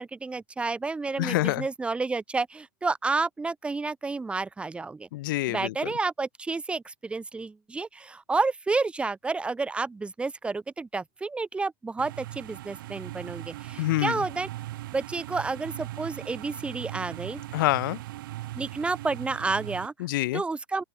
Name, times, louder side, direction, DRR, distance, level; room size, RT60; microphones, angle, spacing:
voice 1, 0.0-5.1 5.5-14.5 14.9-17.4 18.5-19.9 20.3-20.8, right 3 dB, 10° right, 2.5 m, -30 dB
voice 2, 1.2-1.7 5.1-5.9 13.8-14.2 17.5-18.0 20.0-20.4, left 17 dB, 65° left, 0.7 m, -26 dB
sound 1, 12.0-19.9, right 16 dB, 65° right, 2.7 m, -39 dB
open air
supercardioid pair, 140°, 12 cm